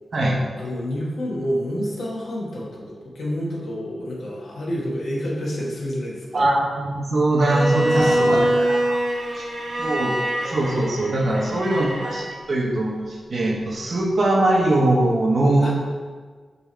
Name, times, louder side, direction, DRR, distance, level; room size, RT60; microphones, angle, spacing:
voice 1, 0.6-6.4 7.6-8.5 9.0-9.4 11.3-11.9 15.6-15.7, equal, 75° left, -4 dB, 1.1 m, -29 dB
voice 2, 6.3-9.0 9.3-9.4 9.8-10.1 10.4-15.7, right 1 dB, 60° right, -2 dB, 1.0 m, -21 dB
Bowed string instrument, 7.4-12.3, right 1 dB, 85° right, 1.4 m, -24 dB
5.4 x 3.0 x 3.3 m, 1.5 s
supercardioid pair, 40°, 0 cm